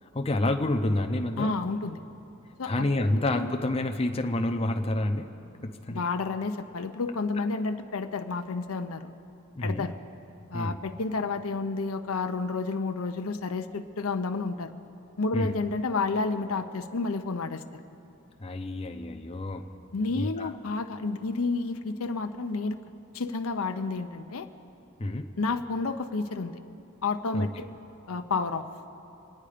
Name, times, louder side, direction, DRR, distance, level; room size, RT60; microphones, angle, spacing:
voice 1, 0.1-1.6 2.6-5.3 5.6-6.1 9.6-9.9 10.5-10.8 15.3-15.5 18.4-19.7 20.1-20.5 25.0-25.3 27.3-27.5, left 1 dB, 25° left, 5 dB, 0.7 m, -28 dB
voice 2, 1.4-2.0 2.6-3.5 5.9-9.1 9.6-10.0 10.5-14.7 15.2-17.6 19.9-22.8 23.1-24.5 25.4-26.6 27.0-27.7 28.1-28.6, left 3 dB, 70° left, 7 dB, 0.7 m, -30 dB
26.0 x 9.7 x 5.0 m, 3.0 s
head